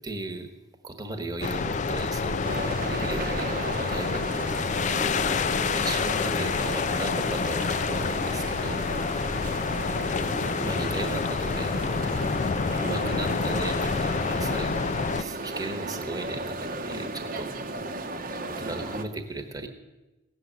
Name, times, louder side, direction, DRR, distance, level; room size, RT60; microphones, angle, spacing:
voice 1, 0.0-0.5 0.8-2.5 2.8-4.3 5.1-8.8 10.1-12.0 12.8-14.7 15.2-17.5 18.5-19.7, right 2 dB, 20° right, 7 dB, 1.2 m, -36 dB
sound 1, 1.4-15.2, left 5 dB, 35° left, 0.4 m, -28 dB
sound 2, 2.4-19.0, right 2 dB, 40° right, 1.0 m, -35 dB
16.5 x 7.5 x 9.4 m, 1.1 s
head